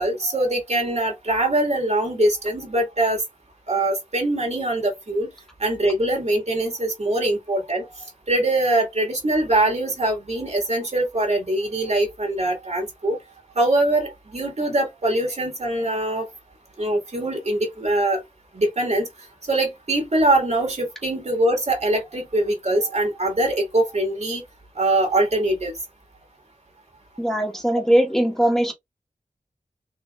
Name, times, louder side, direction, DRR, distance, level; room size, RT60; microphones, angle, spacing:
voice 1, 0.0-3.2 3.7-5.3 5.6-8.0 8.3-13.2 13.6-16.3 16.8-18.2 18.5-19.1 19.5-24.4 24.8-25.8, right 1 dB, 55° right, 1.9 m, -23 dB
voice 2, 27.2-28.7, right 1 dB, 5° left, 1.3 m, -20 dB
4.2 x 2.8 x 2.4 m
wide cardioid pair, 55°, 14 cm